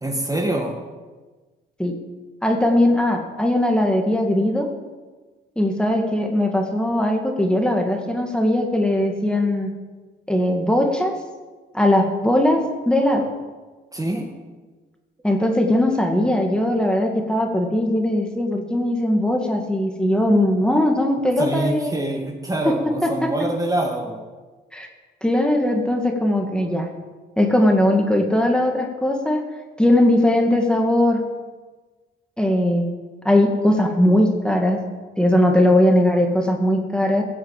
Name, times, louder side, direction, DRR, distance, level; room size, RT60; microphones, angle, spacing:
voice 1, 0.0-0.8 13.9-14.3 21.4-24.2 36.1-36.3, right 1 dB, 15° right, 2 dB, 2.0 m, -25 dB
voice 2, 2.4-4.7 5.6-9.7 10.3-11.1 11.7-12.6 12.9-13.3 15.2-22.0 23.0-23.3 24.7-24.9 25.2-26.9 27.4-29.4 29.8-31.2 32.4-32.8 33.2-34.8 35.2-37.2, left 1 dB, 5° left, 3 dB, 2.1 m, -19 dB
16.0 x 8.0 x 7.7 m, 1.3 s
cardioid pair, 90°, 20 cm